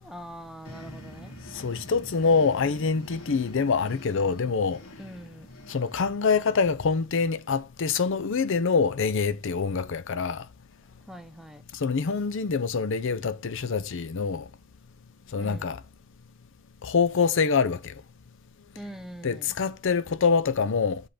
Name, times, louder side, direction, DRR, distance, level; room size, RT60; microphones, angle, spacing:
voice 1, 0.0-1.3 5.0-5.5 11.1-11.6 15.4-15.7 18.7-19.6, equal, ahead, 0.6 m, -43 dB
sound 1, 0.6-7.1, equal, 80° left, 2.0 m, -45 dB
voice 2, 1.5-4.8 5.7-10.5 11.7-14.5 15.3-15.8 16.8-17.9 19.2-21.0, left 5 dB, 65° left, 0.5 m, -25 dB
8.0 x 3.7 x 5.0 m
head